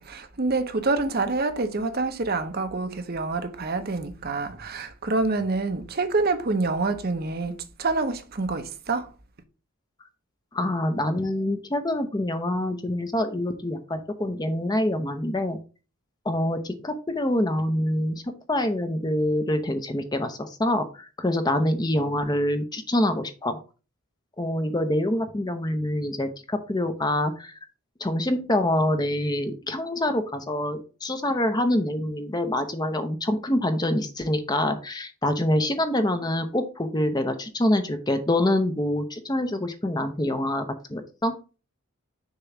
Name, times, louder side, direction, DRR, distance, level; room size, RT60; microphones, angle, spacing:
voice 1, 0.0-9.1, right 3 dB, 45° right, 0.7 m, -27 dB
voice 2, 10.5-15.6 16.2-23.6 24.4-27.6 28.0-40.6 40.9-41.3, left 1 dB, 20° left, 0.6 m, -26 dB
6.6 x 3.0 x 5.8 m
head